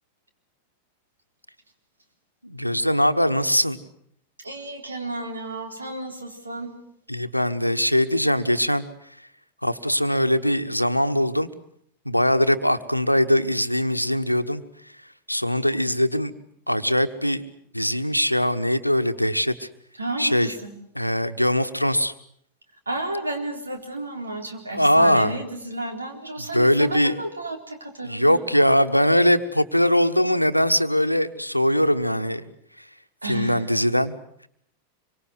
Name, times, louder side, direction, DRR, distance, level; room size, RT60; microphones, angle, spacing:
voice 1, 2.4-3.8 7.1-8.9 9.6-11.5 12.0-14.6 15.3-16.4 16.7-17.4 17.7-19.7 20.2-20.5 21.0-22.1 24.7-25.4 26.5-27.1 28.0-32.5 33.2-34.2, equal, 90° left, 9 dB, 1.2 m, -21 dB
voice 2, 4.4-6.7 20.0-20.7 22.9-28.4 33.2-33.6, right 2 dB, 80° right, 4 dB, 4.0 m, -32 dB
25.5 x 24.0 x 8.0 m, 0.69 s
figure-of-eight pair, 90°, 0 cm